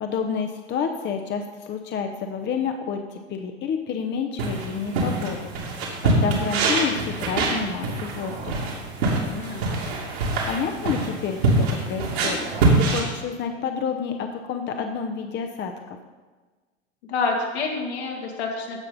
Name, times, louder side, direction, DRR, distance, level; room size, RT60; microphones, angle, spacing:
voice 1, 0.0-5.5 6.0-8.7 10.5-12.4 12.7-16.0, left 6 dB, 35° left, 4 dB, 0.8 m, -29 dB
sound 1, 4.4-13.0, right 2 dB, 70° right, 2.6 m, -24 dB
voice 2, 9.3-9.8 17.1-18.8, left 4 dB, 70° left, 0 dB, 2.1 m, -28 dB
15.5 x 5.3 x 4.1 m, 1.3 s
hypercardioid pair, 90°, 33 cm